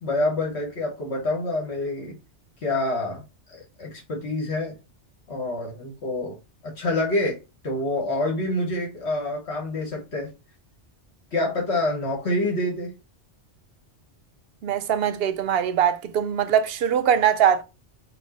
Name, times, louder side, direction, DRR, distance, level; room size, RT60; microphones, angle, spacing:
voice 1, 0.0-2.1 2.6-3.2 3.5-4.7 5.3-6.3 6.6-7.4 7.6-10.3 11.3-12.9, left 2 dB, 70° left, 1.4 m, -27 dB
voice 2, 14.6-17.6, right 9 dB, 65° right, 0.7 m, -22 dB
4.6 x 2.2 x 4.1 m
omnidirectional pair, 1.2 m